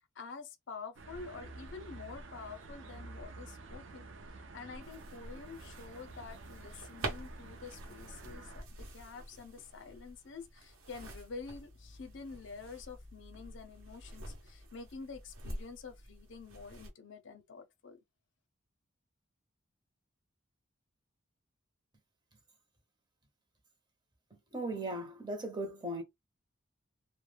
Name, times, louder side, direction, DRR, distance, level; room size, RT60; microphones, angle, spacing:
voice 1, 0.2-4.1 4.5-18.0, left 4 dB, 60° left, 0.5 m, -48 dB
sound 1, 0.9-8.6, right 2 dB, 65° right, 0.5 m, -50 dB
sound 2, 4.8-16.9, right 1 dB, 85° right, 0.9 m, -47 dB
voice 2, 24.5-26.0, right 1 dB, 20° right, 0.6 m, -37 dB
2.2 x 2.0 x 3.2 m
head